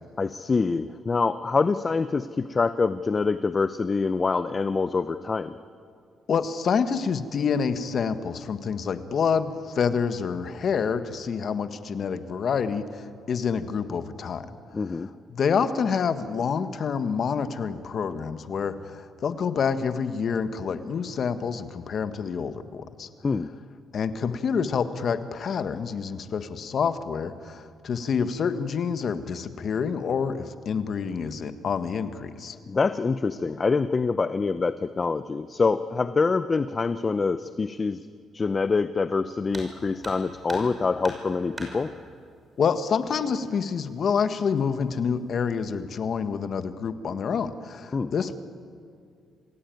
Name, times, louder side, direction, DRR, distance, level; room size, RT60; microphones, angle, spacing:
voice 1, 0.2-5.5 14.7-15.1 23.2-23.5 32.7-38.0 38.3-41.9 47.9-48.1, left 4 dB, 30° left, 12 dB, 0.7 m, -25 dB
voice 2, 6.3-14.5 15.3-23.1 23.9-32.5 42.6-48.4, left 6 dB, 55° left, 10 dB, 1.5 m, -27 dB
sound 1, 39.5-39.7 40.0-40.7 41.0-41.7 42.9-43.0 43.5-43.6 44.3-44.7 45.1-45.5, right 2 dB, 25° right, 5.9 m, -40 dB
27.0 x 16.5 x 9.3 m, 2.3 s
cardioid pair, 90°, 0 cm